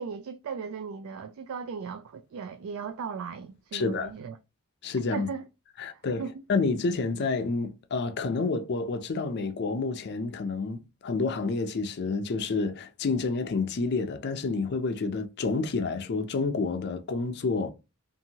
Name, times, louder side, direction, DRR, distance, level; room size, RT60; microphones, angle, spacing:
voice 1, 0.0-4.4 5.1-5.5 5.9-6.3, right 6 dB, 70° right, 0.3 m, -37 dB
voice 2, 3.7-4.1 4.8-5.3 5.8-6.2 6.5-17.7, left 4 dB, 50° left, 0.4 m, -29 dB
2.7 x 2.6 x 2.7 m
head